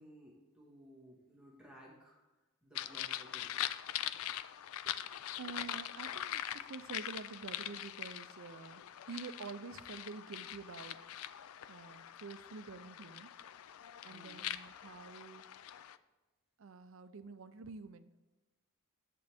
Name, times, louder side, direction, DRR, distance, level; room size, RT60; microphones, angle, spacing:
voice 1, 0.0-2.2 2.6-3.6 14.1-14.4, equal, 5° right, -4 dB, 1.6 m, -57 dB
sound 1, 2.8-16.0, left 11 dB, 75° left, 0.3 m, -43 dB
voice 2, 5.4-11.0 11.7-13.3 14.0-15.4 16.6-18.1, right 4 dB, 65° right, 12 dB, 0.5 m, -48 dB
10.5 x 7.8 x 3.5 m, 1.1 s
head